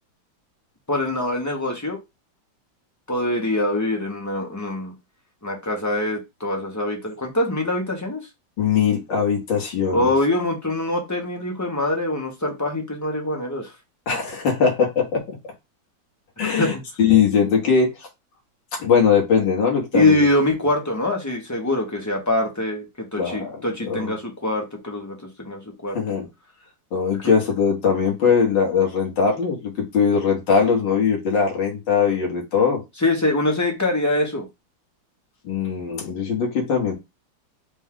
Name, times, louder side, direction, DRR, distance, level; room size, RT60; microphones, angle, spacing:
voice 1, 0.9-2.0 3.1-4.9 5.4-8.2 9.9-13.7 16.4-16.7 19.9-26.0 33.0-34.4, left 2 dB, 25° left, 1 dB, 0.3 m, -24 dB
voice 2, 8.6-10.1 14.1-15.4 16.4-18.1 18.7-20.3 23.2-23.6 23.8-24.1 25.9-26.3 26.9-32.8 35.4-36.9, left 6 dB, 70° left, -1 dB, 2.2 m, -21 dB
5.1 x 2.4 x 3.6 m, 0.23 s
omnidirectional pair, 2.1 m